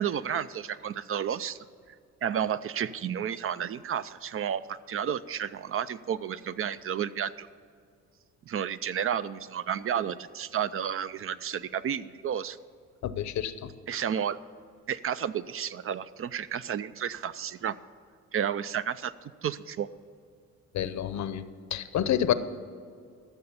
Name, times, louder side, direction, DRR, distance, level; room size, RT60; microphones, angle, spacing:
voice 1, 0.0-1.6 2.2-7.5 8.5-12.6 13.9-14.4 14.9-17.7 18.3-19.9, right 8 dB, 45° right, 14 dB, 0.5 m, -31 dB
voice 2, 13.0-13.7 20.7-21.4 21.7-22.3, left 10 dB, 65° left, 13 dB, 0.8 m, -28 dB
13.5 x 6.7 x 7.1 m, 2.2 s
cardioid pair, 90°, 30 cm